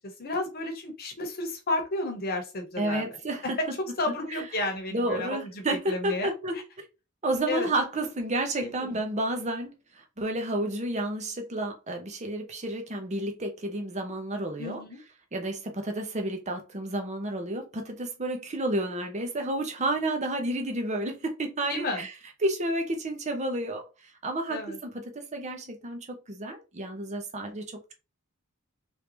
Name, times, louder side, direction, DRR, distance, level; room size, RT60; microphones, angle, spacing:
voice 1, 0.2-3.1 3.6-3.7 4.0-6.3 7.5-7.7 8.6-8.9 14.6-15.0 21.7-22.0 24.5-24.8, left 2 dB, 45° left, 1.0 m, -32 dB
voice 2, 2.8-3.6 4.1-4.4 4.9-6.9 7.2-14.8 15.3-22.1 22.4-27.8, right 1 dB, 30° right, 0.7 m, -31 dB
3.3 x 2.7 x 3.1 m
head